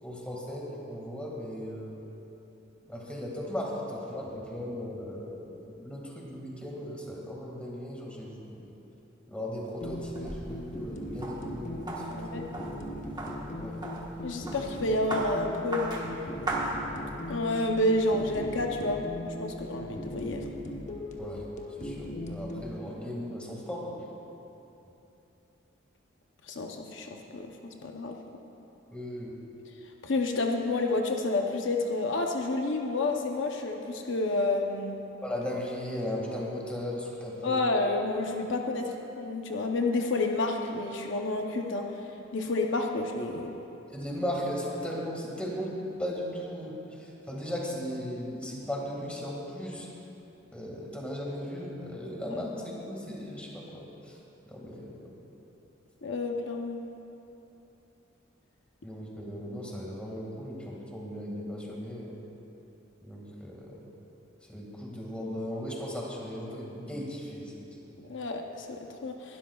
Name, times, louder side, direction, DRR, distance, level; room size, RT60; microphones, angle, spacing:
voice 1, 0.0-2.0 2.9-8.7 9.3-12.5 13.5-13.8 21.2-21.5 21.8-24.1 28.9-29.3 35.2-37.7 43.9-49.9 50.5-54.2 54.5-55.1 58.8-62.2 63.0-63.9 64.5-68.0, equal, 5° left, -3 dB, 2.0 m, -37 dB
sound 1, 9.8-22.7, left 1 dB, 40° left, 1.1 m, -39 dB
sound 2, 9.8-17.4, right 2 dB, 20° right, 1.3 m, -38 dB
voice 2, 12.1-12.4 14.2-16.1 17.3-20.4 26.5-28.2 30.0-35.0 37.4-41.9 42.3-43.5 52.3-52.4 56.0-56.8 68.1-69.4, left 2 dB, 70° left, 2 dB, 0.8 m, -30 dB
20.5 x 12.5 x 2.4 m, 3.0 s
head